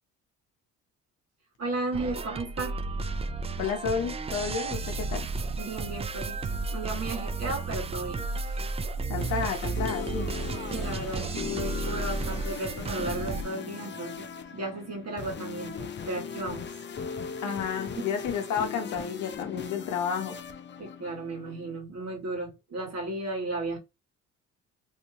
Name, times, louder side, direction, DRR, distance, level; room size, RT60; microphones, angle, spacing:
voice 1, 1.6-2.8 5.6-8.6 10.7-14.3 14.5-16.6 17.5-17.6 18.0-18.1 20.8-23.8, right 2 dB, 55° right, 1.8 m, -35 dB
sound 1, 1.9-13.4, right 3 dB, 20° right, 0.3 m, -33 dB
voice 2, 3.6-5.3 9.1-10.3 17.4-20.4, left 7 dB, 70° left, 0.7 m, -31 dB
sound 2, 9.0-21.8, left 6 dB, 35° left, 0.6 m, -38 dB
3.2 x 2.7 x 2.7 m
cardioid pair, 85°, 30 cm